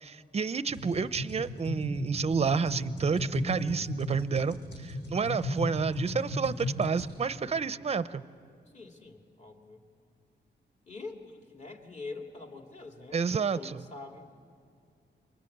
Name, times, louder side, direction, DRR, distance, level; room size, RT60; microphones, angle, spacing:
voice 1, 0.0-4.6 4.8-8.2 13.1-13.8, right 5 dB, 35° right, 15 dB, 0.6 m, -30 dB
sound 1, 0.7-7.1, left 1 dB, 70° left, 6.9 m, -36 dB
voice 2, 4.4-4.8 8.7-9.8 10.9-13.2 13.5-14.3, left 3 dB, 40° left, 3 dB, 2.6 m, -45 dB
28.5 x 24.5 x 8.6 m, 2.3 s
wide cardioid pair, 120°, 19 cm